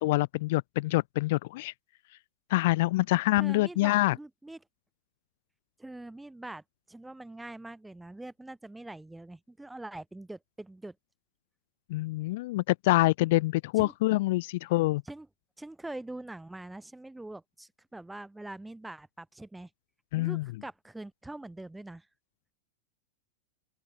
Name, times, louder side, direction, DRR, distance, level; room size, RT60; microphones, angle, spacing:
voice 1, 0.0-1.7 2.5-4.2 11.9-15.0 20.1-20.4, left 19 dB, 55° left, 0.8 m, -26 dB
voice 2, 3.4-4.6 5.8-10.9 13.8-13.9 15.0-15.3 15.6-19.7 20.1-22.1, right 2 dB, 5° right, 5.1 m, -44 dB
open air
supercardioid pair, 150°, 0 cm